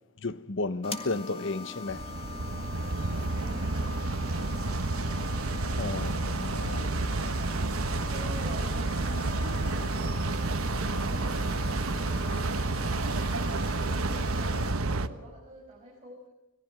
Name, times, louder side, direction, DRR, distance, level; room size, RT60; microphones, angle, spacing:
voice 1, 0.2-2.1 5.8-7.0, left 3 dB, 60° left, 1.0 m, -33 dB
sound 1, 0.8-14.7, left 4 dB, 30° left, 1.7 m, -42 dB
sound 2, 1.9-15.1, right 2 dB, 90° right, 1.2 m, -30 dB
voice 2, 3.2-4.2 8.1-12.2 12.8-16.2, right 1 dB, 25° right, 5.8 m, -47 dB
25.5 x 18.5 x 6.7 m
head